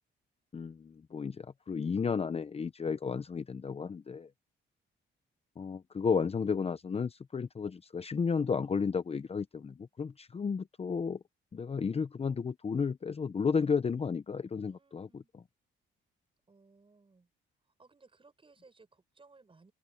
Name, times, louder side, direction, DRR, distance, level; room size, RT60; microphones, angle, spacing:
voice 1, 0.5-4.3 5.6-11.2 11.5-15.2, left 5 dB, 30° left, 0.8 m, -33 dB
voice 2, 14.6-15.3 16.5-17.3 17.8-19.7, right 3 dB, 25° right, 7.8 m, -61 dB
open air
cardioid pair, 90°, 20 cm